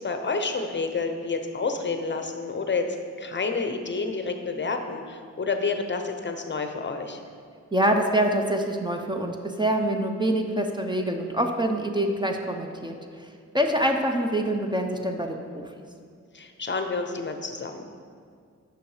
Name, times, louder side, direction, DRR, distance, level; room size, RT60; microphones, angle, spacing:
voice 1, 0.0-7.2 16.3-17.8, left 4 dB, 40° left, 6 dB, 0.7 m, -29 dB
voice 2, 7.7-13.3 13.5-15.7, right 1 dB, 15° right, 3 dB, 0.6 m, -25 dB
9.8 x 6.2 x 4.9 m, 2.2 s
wide cardioid pair, 120°, 29 cm